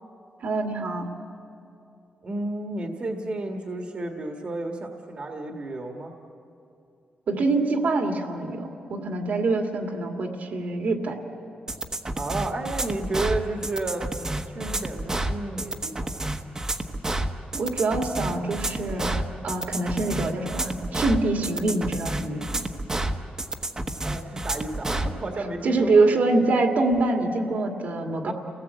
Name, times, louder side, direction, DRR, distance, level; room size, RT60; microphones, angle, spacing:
voice 1, 0.4-1.1 7.3-11.2 17.5-19.2 19.4-22.6 25.6-28.3, right 2 dB, 65° right, 3 dB, 2.4 m, -25 dB
voice 2, 2.2-6.1 12.2-16.3 24.0-26.1 28.2-28.3, right 2 dB, 40° right, 2 dB, 1.7 m, -32 dB
sound 1, 11.7-25.1, right 1 dB, 20° right, 1.1 m, -29 dB
30.0 x 18.5 x 8.2 m, 2.7 s
wide cardioid pair, 140°, 3 cm